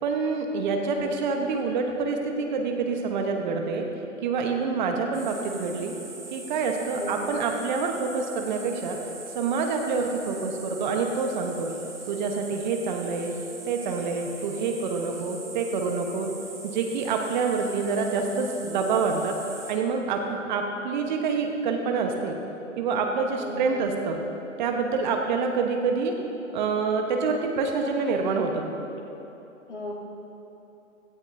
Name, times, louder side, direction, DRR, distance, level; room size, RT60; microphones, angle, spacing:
voice 1, 0.0-3.9 4.2-5.9 6.3-9.0 9.3-11.7 12.1-13.3 13.7-16.3 16.6-19.4 19.7-22.4 22.8-24.2 24.6-26.1 26.5-28.7, right 4 dB, 35° right, 3 dB, 1.1 m, -27 dB
sound 1, 5.1-19.7, right 3 dB, 5° right, 1.4 m, -42 dB
voice 2, 6.9-7.5 23.4-23.8 29.7-29.9, left 1 dB, 60° left, -4 dB, 3.0 m, -36 dB
16.5 x 14.5 x 2.7 m, 3.0 s
figure-of-eight pair, 125°, 39 cm